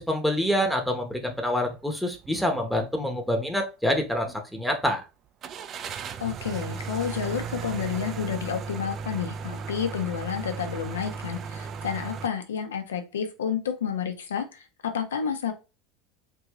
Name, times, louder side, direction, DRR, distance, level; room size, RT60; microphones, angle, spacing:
voice 1, 0.0-5.0, left 1 dB, ahead, 3 dB, 0.9 m, -26 dB
sound 1, 2.1-2.4 2.8-2.9 5.4-12.3, right 5 dB, 40° right, 0.4 m, -36 dB
voice 2, 6.2-15.5, left 7 dB, 80° left, 6 dB, 0.8 m, -30 dB
3.6 x 2.5 x 3.0 m, 0.29 s
hypercardioid pair, 80°, 0 cm